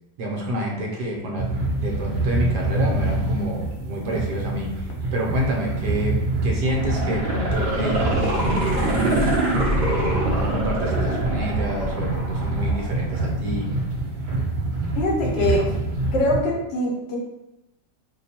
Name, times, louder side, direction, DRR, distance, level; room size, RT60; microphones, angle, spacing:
voice 1, 0.2-1.4 1.7-6.2 6.4-9.3 9.8-13.7 15.4-15.7, equal, 70° right, -1 dB, 1.3 m, -28 dB
sound 1, 1.4-16.4, right 2 dB, 90° right, 1.4 m, -26 dB
sound 2, 6.6-13.6 14.0-14.1, right 1 dB, 45° right, 0.9 m, -25 dB
voice 2, 14.9-15.6 16.1-17.2, left 1 dB, 80° left, -1 dB, 1.4 m, -23 dB
3.1 x 2.2 x 4.2 m, 0.90 s
omnidirectional pair, 2.0 m